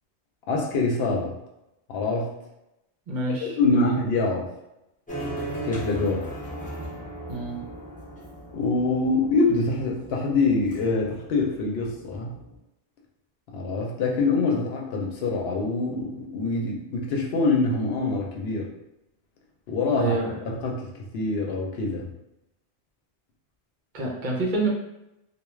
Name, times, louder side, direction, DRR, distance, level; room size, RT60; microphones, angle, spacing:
voice 1, 0.5-1.3 1.9-2.3 3.4-4.5 5.6-6.3 8.5-12.4 13.5-18.7 19.7-20.2 20.5-20.9 21.1-22.1, left 3 dB, 75° left, -1 dB, 0.8 m, -25 dB
voice 2, 3.1-4.0 7.3-7.6 20.0-20.5 23.9-24.7, right 2 dB, 55° right, -2 dB, 0.7 m, -28 dB
sound 1, 5.1-12.6, right 1 dB, 10° left, 0.6 m, -38 dB
2.3 x 2.2 x 3.1 m, 0.88 s
omnidirectional pair, 1.1 m